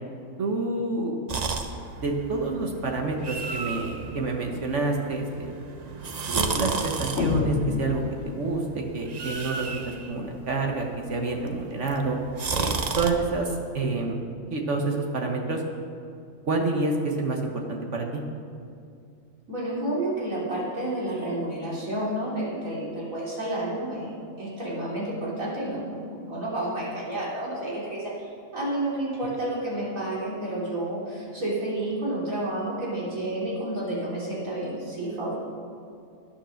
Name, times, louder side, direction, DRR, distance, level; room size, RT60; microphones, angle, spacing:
voice 1, 0.4-1.2 2.0-5.5 6.3-12.2 12.6-14.2 14.5-15.6 16.4-18.2, right 3 dB, 65° right, 1 dB, 1.4 m, -28 dB
sound 1, 1.3-13.1, right 4 dB, 40° right, 0.7 m, -33 dB
sound 2, 7.2-8.8, left 5 dB, 60° left, 1.0 m, -27 dB
voice 2, 19.5-24.1 24.4-35.4, right 1 dB, 80° right, -6 dB, 3.8 m, -30 dB
11.5 x 9.5 x 6.4 m, 2.5 s
omnidirectional pair, 1.4 m